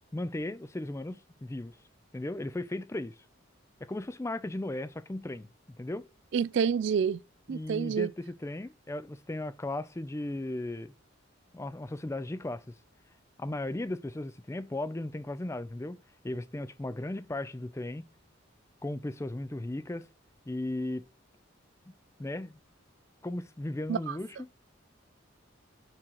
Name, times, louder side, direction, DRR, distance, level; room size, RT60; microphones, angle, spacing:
voice 1, 0.1-1.7 2.1-3.1 3.8-5.5 5.8-6.1 7.5-10.9 11.5-12.7 13.4-16.0 16.2-18.0 18.8-20.1 20.5-21.0 22.2-22.6 23.2-24.4, left 1 dB, 15° left, 0.4 m, -36 dB
voice 2, 6.3-7.2 7.5-8.1 23.9-24.2, right 7 dB, 60° right, 0.3 m, -28 dB
6.2 x 4.4 x 6.3 m
head